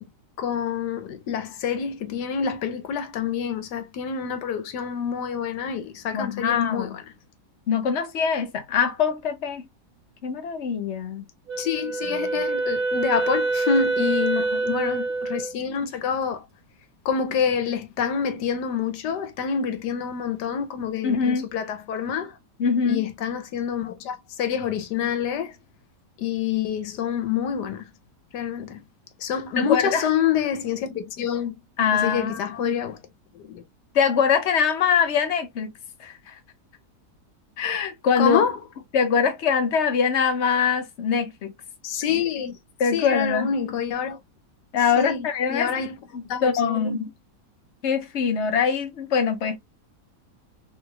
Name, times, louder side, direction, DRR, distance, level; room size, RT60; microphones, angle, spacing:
voice 1, 0.4-7.0 11.6-16.4 17.0-22.3 22.9-25.5 26.2-27.9 28.3-28.8 29.2-31.5 31.9-33.0 33.3-33.6 38.2-38.6 41.8-42.6 42.9-44.2 45.0-46.0 46.3-47.0, left 7 dB, 85° left, 1.4 m, -27 dB
voice 2, 6.1-7.0 7.7-9.6 10.2-11.2 14.4-14.8 21.0-21.5 22.6-23.0 29.6-30.0 31.8-32.8 33.9-35.7 36.0-36.3 37.6-38.4 38.9-41.5 42.8-43.5 44.7-45.7 46.1-47.1 47.8-49.6, left 6 dB, 55° left, 0.8 m, -23 dB
Wind instrument woodwind instrument, 11.5-15.5, right 3 dB, 65° right, 1.7 m, -26 dB
3.6 x 3.2 x 2.3 m
omnidirectional pair, 1.8 m